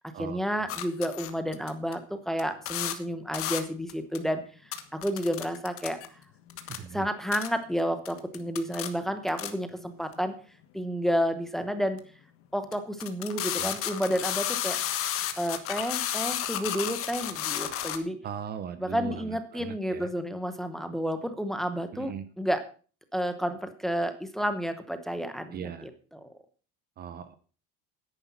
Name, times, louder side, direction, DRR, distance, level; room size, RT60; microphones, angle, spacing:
voice 1, 0.2-6.0 6.9-10.4 10.7-12.0 12.5-14.8 15.4-18.2 18.8-22.6 23.1-25.9 26.2-26.3, equal, ahead, 9 dB, 0.9 m, -31 dB
sound 1, 0.7-1.9 2.4-2.5 2.7-2.9 3.3-3.6 3.9-4.2 4.7-6.1 6.5-6.8 7.3-7.5 8.0-9.5 10.1-10.2 12.0-12.1 12.7-12.8 13.0-18.0, left 11 dB, 45° left, 1.4 m, -32 dB
voice 2, 6.6-7.1 13.5-13.8 18.2-20.1 21.9-22.2 25.5-25.9 27.0-27.4, right 8 dB, 30° right, 13 dB, 0.8 m, -39 dB
10.0 x 10.0 x 5.6 m, 0.38 s
cardioid pair, 170°, 31 cm